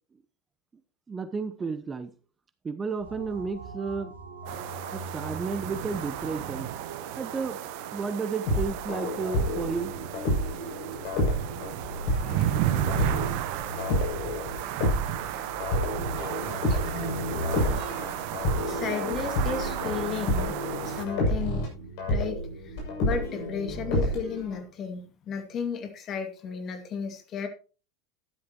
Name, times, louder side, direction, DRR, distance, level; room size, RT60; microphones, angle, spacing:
voice 1, 1.1-2.1 2.6-4.1 4.9-6.7 7.2-7.6 7.9-9.9, right 5 dB, 20° right, 11 dB, 0.9 m, -32 dB
sound 1, 3.0-9.4, right 3 dB, 80° right, 2.3 m, -44 dB
sound 2, 4.5-21.1, right 12 dB, 60° right, 1.1 m, -34 dB
sound 3, 8.4-24.6, left 1 dB, 60° left, 7.1 m, -29 dB
voice 2, 18.6-20.5 20.9-21.7 22.1-27.5, left 6 dB, 40° left, 7 dB, 2.3 m, -34 dB
13.5 x 11.5 x 3.0 m, 0.35 s
hypercardioid pair, 85°, 0 cm